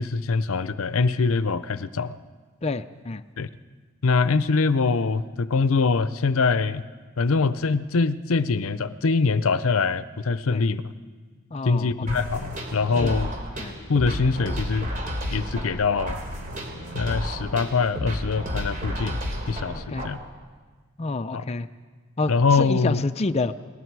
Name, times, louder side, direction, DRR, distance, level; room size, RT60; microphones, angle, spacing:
voice 1, 0.0-2.2 3.4-3.5 4.0-6.8 7.2-10.9 11.6-13.3 13.9-14.9 15.3-16.2 16.9-19.2 19.5-20.2 21.3-21.4 22.3-23.0, left 4 dB, 75° left, 14 dB, 0.6 m, -23 dB
voice 2, 2.6-3.2 10.5-10.6 11.5-11.9 13.0-13.2 13.6-13.8 19.7-20.1 21.0-21.7 22.2-23.5, left 3 dB, 30° left, 8 dB, 0.5 m, -28 dB
sound 1, 12.1-20.1, equal, 40° right, 3.3 m, -32 dB
29.5 x 19.5 x 4.7 m, 1.5 s
head